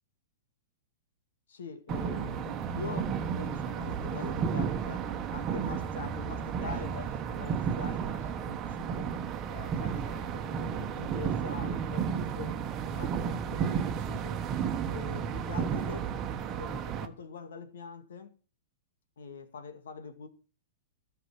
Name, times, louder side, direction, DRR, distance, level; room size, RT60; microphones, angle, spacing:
voice 1, 1.5-5.1 5.3-9.1 9.5-12.6 12.9-14.4 14.9-16.1 16.5-18.3 19.2-20.3, left 4 dB, 85° left, 2.2 m, -44 dB
sound 1, 1.9-17.1, right 7 dB, 25° right, 1.2 m, -33 dB
13.5 x 5.9 x 7.5 m
hypercardioid pair, 140°, 0 cm